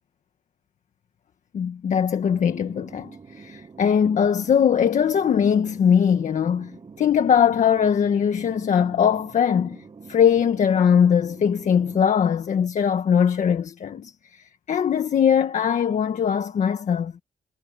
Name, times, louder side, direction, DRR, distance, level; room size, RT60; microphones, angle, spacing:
voice 1, 1.5-9.8 10.1-17.1, left 8 dB, 55° left, 1.6 m, -21 dB
sound 1, 2.2-12.0, right 5 dB, 35° right, 7.5 m, -45 dB
wide cardioid pair, 145°, 14 cm